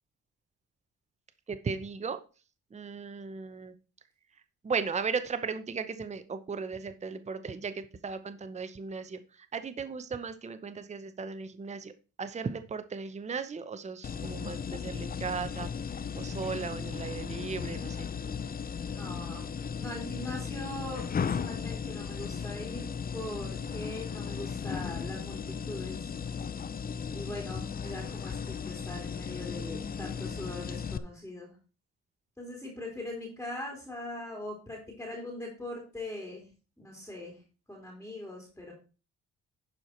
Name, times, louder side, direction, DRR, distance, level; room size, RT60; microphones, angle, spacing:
voice 1, 1.5-2.2 2.7-3.7 4.6-11.9 12.2-15.7 16.2-18.3, right 5 dB, 25° right, 11 dB, 0.7 m, -36 dB
sound 1, 14.0-31.0, left 6 dB, 30° left, 0.6 m, -36 dB
voice 2, 19.0-19.5 19.8-22.9 23.1-26.1 27.1-31.5 32.4-36.4 36.8-37.4 37.7-38.7, left 1 dB, 5° left, 0 dB, 3.1 m, -41 dB
11.5 x 4.7 x 4.4 m, 0.34 s
cardioid pair, 90°, 30 cm